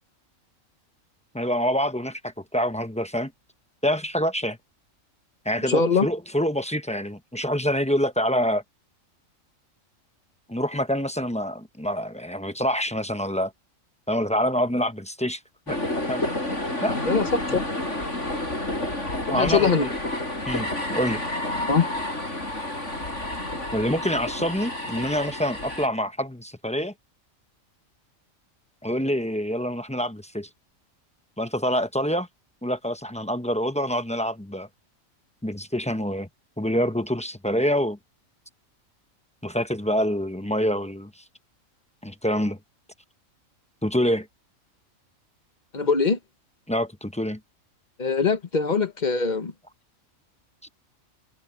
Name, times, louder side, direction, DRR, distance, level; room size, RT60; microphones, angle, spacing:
voice 1, 1.3-3.3 3.8-4.6 5.4-8.6 10.5-13.5 14.1-15.4 15.7-15.8 16.1-16.2 16.8-17.0 19.3-19.9 20.5-21.2 23.7-26.9 28.8-30.5 31.4-32.3 32.6-34.7 35.4-36.3 36.6-38.0 39.4-41.1 42.0-42.6 43.8-44.3 46.7-47.4, equal, 5° left, 0.7 m, -26 dB
voice 2, 5.6-6.1 17.0-17.6 19.3-19.9 21.7-21.9 45.7-46.2 48.0-49.5, left 5 dB, 35° left, 1.2 m, -22 dB
sound 1, 15.7-25.9, left 1 dB, 60° left, 7.4 m, -30 dB
omnidirectional pair, 1.4 m